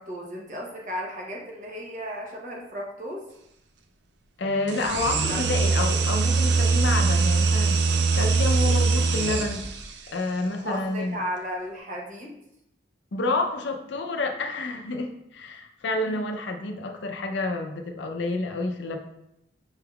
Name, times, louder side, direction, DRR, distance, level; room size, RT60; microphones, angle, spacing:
voice 1, 0.0-3.2 5.1-5.4 10.6-12.4 16.0-16.2, equal, 45° right, -1 dB, 0.9 m, -35 dB
voice 2, 4.4-9.8 10.1-11.2 13.1-19.0, left 2 dB, 75° left, 4 dB, 0.5 m, -29 dB
sound 1, 4.7-9.9, right 4 dB, 70° right, 0.4 m, -22 dB
5.5 x 3.4 x 2.3 m, 0.82 s
head